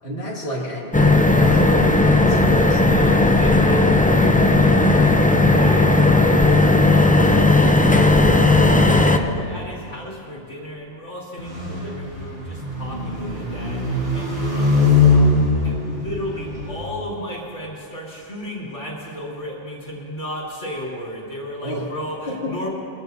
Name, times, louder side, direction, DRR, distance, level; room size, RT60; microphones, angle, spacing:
voice 1, 0.0-3.2 7.9-9.5 21.6-21.9 22.3-22.7, equal, 55° left, -6 dB, 2.7 m, -32 dB
sound 1, 0.9-9.2, left 2 dB, 15° left, 0.3 m, -15 dB
voice 2, 2.5-7.2 8.8-22.7, equal, 85° left, -4 dB, 2.9 m, -35 dB
sound 2, 11.4-16.9, left 3 dB, 90° right, 4.4 m, -21 dB
22.5 x 15.0 x 2.7 m, 2.6 s
omnidirectional pair, 1.2 m